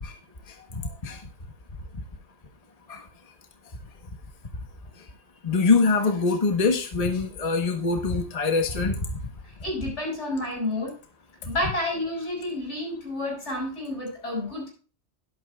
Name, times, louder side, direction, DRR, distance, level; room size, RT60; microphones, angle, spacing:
voice 1, 0.7-1.2 2.9-3.0 5.4-9.0, left 4 dB, 35° left, 5 dB, 1.2 m, -24 dB
voice 2, 9.4-11.0 11.5-14.7, left 1 dB, 75° left, 0 dB, 7.1 m, -30 dB
12.0 x 12.0 x 2.4 m, 0.36 s
omnidirectional pair, 1.2 m